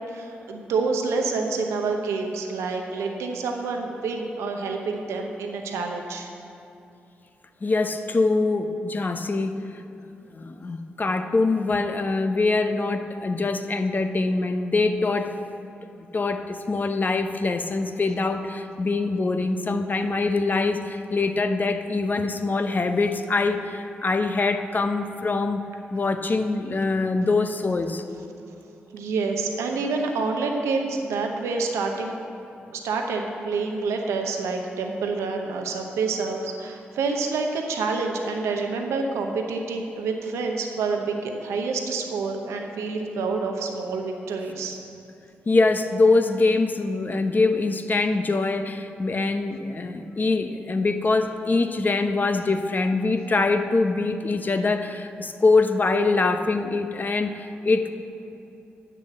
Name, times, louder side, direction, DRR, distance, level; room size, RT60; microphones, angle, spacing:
voice 1, 0.1-6.3 28.9-32.1 32.7-44.8, right 4 dB, 80° right, 3 dB, 0.8 m, -28 dB
voice 2, 7.6-9.6 10.3-15.3 16.1-25.6 25.9-28.0 45.5-57.9, left 3 dB, 40° left, 7 dB, 0.7 m, -24 dB
7.9 x 6.8 x 7.3 m, 2.8 s
supercardioid pair, 45°, 5 cm